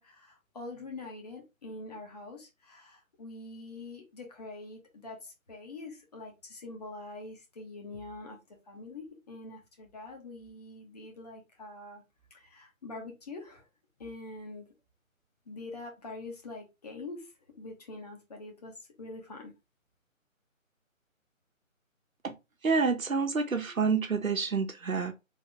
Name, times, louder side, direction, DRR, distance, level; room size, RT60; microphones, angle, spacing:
voice 1, 0.0-8.4 8.7-12.0 12.3-13.6 14.0-14.6 15.5-17.3 17.6-19.5, left 2 dB, 30° left, 1.2 m, -44 dB
voice 2, 22.6-25.1, right 5 dB, 75° right, 1.1 m, -28 dB
3.8 x 2.8 x 3.4 m
figure-of-eight pair, 150°, 41 cm